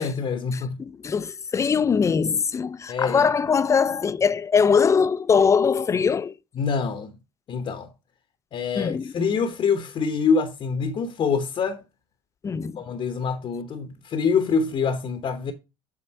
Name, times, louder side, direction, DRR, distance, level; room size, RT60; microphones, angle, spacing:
voice 1, 0.0-0.8 2.9-3.3 6.6-7.1 7.5-7.9 8.5-11.8 12.8-15.5, left 5 dB, 40° left, 0.9 m, -25 dB
voice 2, 0.5-6.4 8.8-9.1 12.4-12.8, left 6 dB, 25° left, 0.5 m, -22 dB
7.4 x 3.7 x 4.4 m
supercardioid pair, 85°, 13 cm